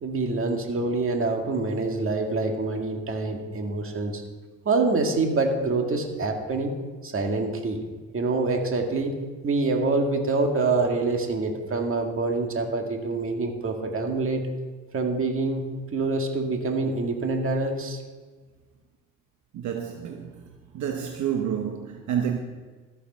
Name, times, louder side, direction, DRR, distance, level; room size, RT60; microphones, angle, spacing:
voice 1, 0.0-4.2 4.7-6.7 7.0-7.8 8.1-9.1 9.4-14.4 14.9-15.6 15.9-18.0, right 3 dB, 45° right, 2.0 m, -26 dB
voice 2, 19.5-20.4 20.7-22.4, right 8 dB, 70° right, 1.0 m, -29 dB
14.0 x 6.7 x 5.6 m
cardioid pair, 90°, 30 cm